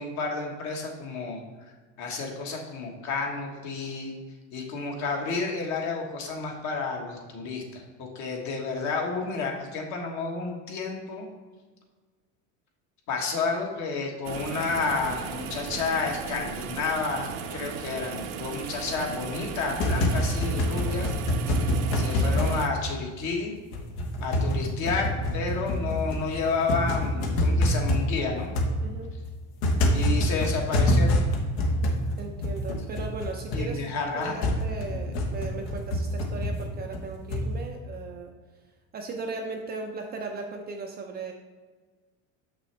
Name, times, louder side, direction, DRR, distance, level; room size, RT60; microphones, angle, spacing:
voice 1, 0.0-1.4 2.0-4.1 4.5-11.3 13.1-21.1 21.9-23.5 24.2-28.5 29.9-31.2 33.5-34.4 34.9-35.1, left 4 dB, 45° left, 1 dB, 1.4 m, -31 dB
sound 1, 14.2-22.7, right 7 dB, 55° right, 0.8 m, -36 dB
sound 2, 19.6-23.4 23.7-37.7, left 1 dB, 65° left, 1.2 m, -26 dB
voice 2, 32.2-33.8 34.1-38.3 38.9-41.3, right 3 dB, 25° right, 2 dB, 0.5 m, -37 dB
6.9 x 6.0 x 3.3 m, 1.4 s
cardioid pair, 150°, 39 cm